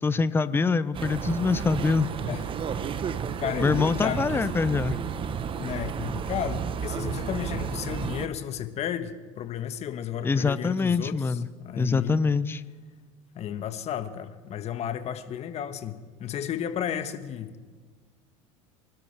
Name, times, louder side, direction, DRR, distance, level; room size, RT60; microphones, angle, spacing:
voice 1, 0.0-2.1 3.6-5.0 10.2-11.5 11.8-12.6, left 4 dB, 15° left, 15 dB, 0.6 m, -24 dB
sound 1, 0.9-8.3, right 7 dB, 30° right, 1.0 m, -32 dB
voice 2, 3.4-4.5 5.6-12.2 13.3-17.6, left 9 dB, 40° left, 9 dB, 1.4 m, -33 dB
25.0 x 12.5 x 3.4 m, 1.4 s
hypercardioid pair, 90°, 16 cm